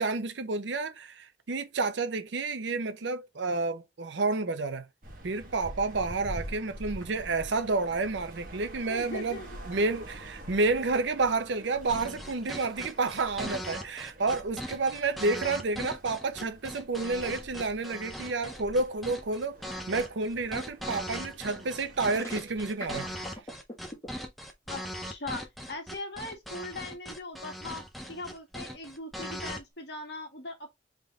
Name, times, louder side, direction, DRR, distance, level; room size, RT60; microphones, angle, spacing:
voice 1, 0.0-4.9 5.2-9.4 9.7-19.6 19.9-23.2, right 3 dB, 75° right, 0.6 m, -30 dB
sound 1, 5.0-23.4, equal, 45° right, 1.2 m, -47 dB
voice 2, 8.9-9.6 24.7-30.7, left 2 dB, 60° left, 1.4 m, -40 dB
sound 2, 11.9-29.6, equal, ahead, 0.6 m, -40 dB
sound 3, 21.9-24.1, left 1 dB, 15° left, 1.8 m, -42 dB
3.8 x 3.7 x 3.3 m
head